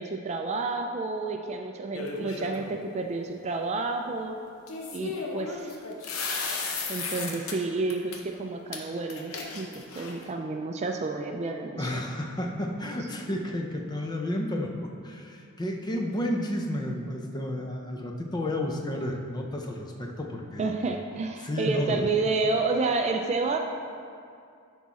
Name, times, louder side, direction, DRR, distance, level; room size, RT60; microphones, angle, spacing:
voice 1, 0.0-4.4 4.9-5.7 6.9-12.0 20.6-23.6, right 3 dB, 30° right, 4 dB, 0.3 m, -30 dB
sound 1, 1.9-2.7 4.7-7.6 7.9-8.2 8.7-8.8 9.1-10.3, left 4 dB, 65° left, 0.8 m, -34 dB
voice 2, 11.8-20.7 21.4-22.1, left 1 dB, 20° left, 1 dB, 0.5 m, -32 dB
10.0 x 3.6 x 4.1 m, 2.4 s
head